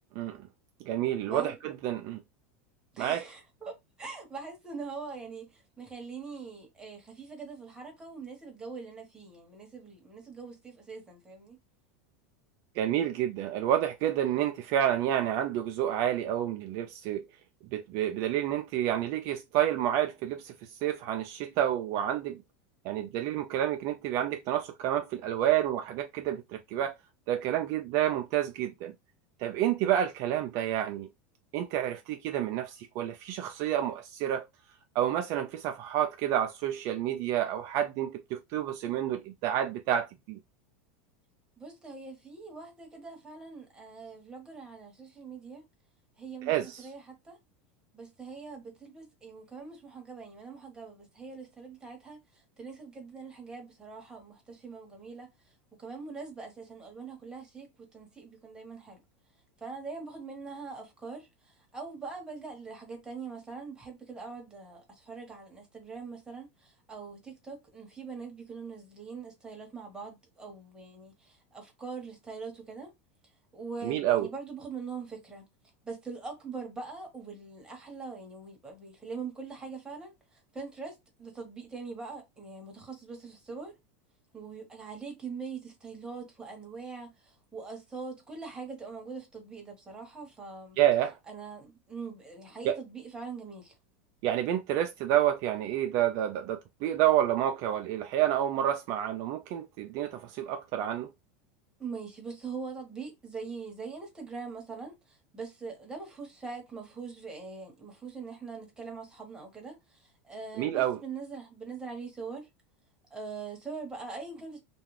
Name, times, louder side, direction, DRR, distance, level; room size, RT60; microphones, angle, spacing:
voice 1, 0.2-0.5 0.8-2.2 3.0-3.2 12.8-17.3 17.7-22.4 22.8-26.9 27.3-28.9 29.4-31.1 31.5-34.5 34.9-40.4 46.5-46.9 73.8-74.3 90.8-91.2 92.6-92.8 94.2-101.1 110.6-111.0, right 11 dB, 50° right, 0.4 m, -29 dB
voice 2, 2.9-11.6 41.6-45.6 46.2-47.4 47.9-55.3 55.8-57.7 57.9-59.0 59.6-72.9 73.5-75.4 75.8-83.7 84.3-90.8 91.3-93.7 101.8-112.5 113.1-114.6, right 4 dB, 10° right, 1.2 m, -42 dB
2.4 x 2.3 x 3.1 m
supercardioid pair, 135°, 7 cm